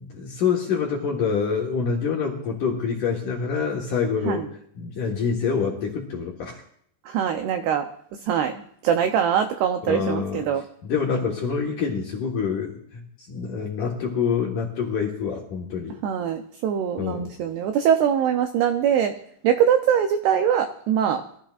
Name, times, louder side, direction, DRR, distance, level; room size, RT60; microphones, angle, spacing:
voice 1, 0.0-4.4 4.8-6.6 9.9-10.5 10.8-16.0 17.0-17.3, left 6 dB, 60° left, -2 dB, 2.2 m, -26 dB
voice 2, 7.1-7.9 8.2-10.6 16.0-19.1 19.4-21.2, right 8 dB, 85° right, 6 dB, 2.3 m, -22 dB
23.0 x 14.5 x 2.5 m, 0.67 s
omnidirectional pair, 5.6 m